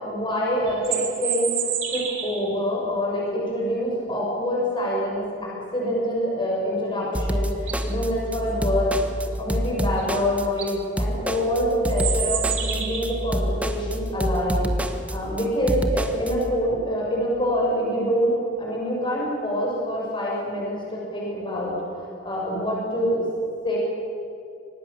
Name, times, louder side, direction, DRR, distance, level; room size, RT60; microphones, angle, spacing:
voice 1, 0.0-9.0 9.4-14.6 15.1-18.3 18.6-23.3 23.6-23.8, equal, 25° left, -3 dB, 6.7 m, -26 dB
sound 1, 0.7-2.5 7.0-7.1 7.5-7.9 10.0-10.1 10.4-10.7 11.9-13.3, right 9 dB, 80° right, 3.2 m, -29 dB
sound 2, 7.1-16.3, equal, 5° right, 1.3 m, -27 dB
24.5 x 19.0 x 7.4 m, 2.5 s
head